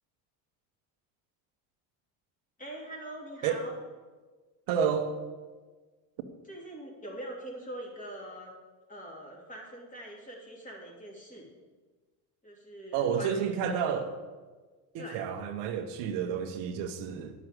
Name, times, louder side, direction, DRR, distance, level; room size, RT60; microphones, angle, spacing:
voice 1, 2.6-3.7 6.5-8.5 8.9-11.5 12.4-14.0 15.0-15.2, right 1 dB, 20° left, -1 dB, 3.2 m, -43 dB
voice 2, 4.7-5.2 12.9-14.1 14.9-17.3, right 7 dB, 75° right, 5 dB, 1.3 m, -30 dB
10.5 x 6.1 x 8.1 m, 1.3 s
cardioid pair, 130°, 42 cm